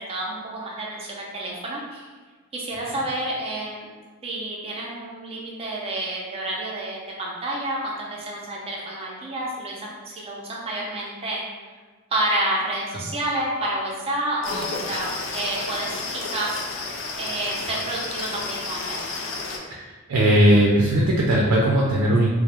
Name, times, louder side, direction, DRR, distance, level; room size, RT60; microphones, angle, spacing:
voice 1, 0.0-2.1 2.5-3.9 4.2-11.4 12.1-19.2, right 1 dB, 25° right, -3 dB, 0.4 m, -29 dB
sound 1, 14.4-19.6, left 3 dB, 60° left, 0.3 m, -31 dB
voice 2, 19.7-22.3, right 1 dB, 90° right, -3 dB, 0.4 m, -18 dB
2.3 x 2.0 x 2.9 m, 1.4 s
head